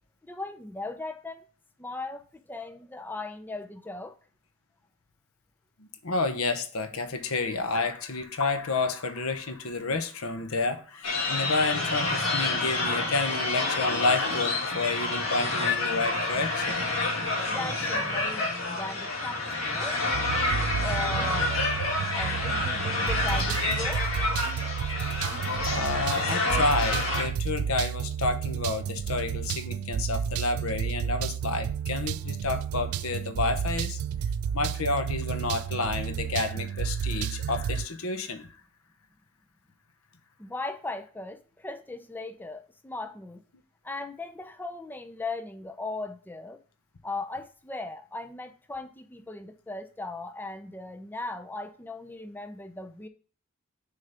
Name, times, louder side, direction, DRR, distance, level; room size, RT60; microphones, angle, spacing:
voice 1, 0.2-1.4 1.8-4.2 17.5-21.6 22.1-24.0 40.4-43.4 43.8-46.6 47.0-53.1, left 2 dB, 10° left, 0.4 m, -38 dB
voice 2, 5.8-16.8 25.6-34.0 34.5-38.5, left 3 dB, 90° left, 0.9 m, -30 dB
sound 1, 11.0-27.2, left 2 dB, 70° left, 1.9 m, -28 dB
sound 2, 20.1-37.9, right 8 dB, 90° right, 0.3 m, -31 dB
6.6 x 3.7 x 5.6 m
head